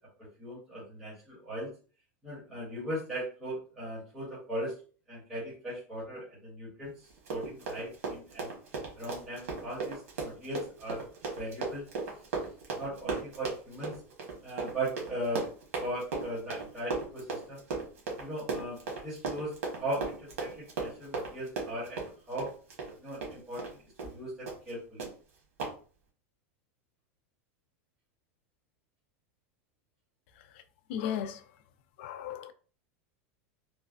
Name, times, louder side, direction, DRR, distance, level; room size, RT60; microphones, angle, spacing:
voice 1, 0.2-1.7 2.2-4.7 5.1-8.5 9.0-11.0 11.4-11.9 12.7-13.9 14.4-15.5 15.8-17.6 18.2-22.5 23.0-25.1, right 1 dB, 10° right, 1.3 m, -38 dB
Run, 7.1-23.7 24.0-24.2 24.5-24.7 25.0-25.1 25.6-25.7, right 4 dB, 85° right, 1.2 m, -36 dB
voice 2, 30.9-31.6 32.0-32.5, left 9 dB, 50° left, 0.3 m, -36 dB
3.1 x 2.1 x 2.5 m
supercardioid pair, 165°, 7 cm